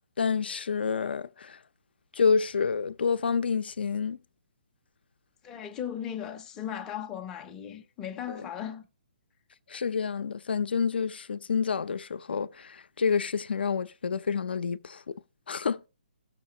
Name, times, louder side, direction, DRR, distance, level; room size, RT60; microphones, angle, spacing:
voice 1, 0.2-1.6 2.1-4.2 8.3-8.4 9.7-15.1 15.5-15.9, left 5 dB, 70° left, 0.5 m, -28 dB
voice 2, 5.4-8.8, left 9 dB, 10° left, 0.4 m, -37 dB
15.5 x 6.6 x 2.7 m
hypercardioid pair, 175°, 6 cm